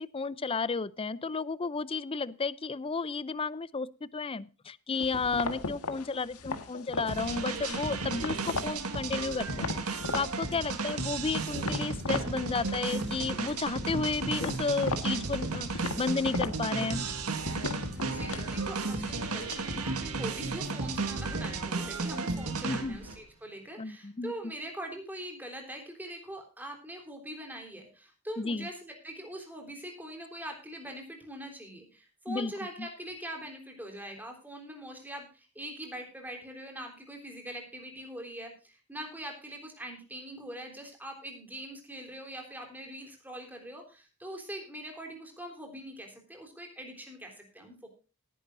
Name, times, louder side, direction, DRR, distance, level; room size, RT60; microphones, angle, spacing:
voice 1, 0.0-17.1 22.7-23.0 23.8-24.3 28.4-28.7 32.3-32.5 32.8-32.9, left 4 dB, 25° left, 19 dB, 0.5 m, -33 dB
sound 1, 5.0-8.8 9.1-10.3 10.7-12.3 12.6-13.3 13.5-19.8, left 3 dB, 80° left, 1.6 m, -37 dB
sound 2, 7.1-23.2, right 3 dB, 80° right, 1.7 m, -34 dB
voice 2, 17.9-47.9, right 1 dB, 10° right, 2 dB, 3.7 m, -43 dB
18.5 x 10.0 x 2.6 m, 0.34 s
head